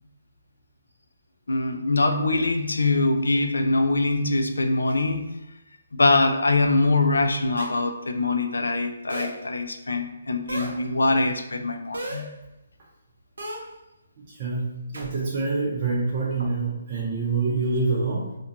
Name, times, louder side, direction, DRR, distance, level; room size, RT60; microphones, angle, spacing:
voice 1, 1.5-5.3 5.9-12.3, left 2 dB, 90° left, 6 dB, 0.3 m, -23 dB
sound 1, 7.6-7.9 9.1-9.5 10.5-10.8 11.9-12.3 13.4-13.7 14.9-15.1 16.4-16.5, right 1 dB, 80° right, 0.7 m, -34 dB
voice 2, 14.2-18.4, right 3 dB, 35° right, -7 dB, 0.6 m, -26 dB
2.4 x 2.2 x 2.8 m, 0.93 s
hypercardioid pair, 155°, 0 cm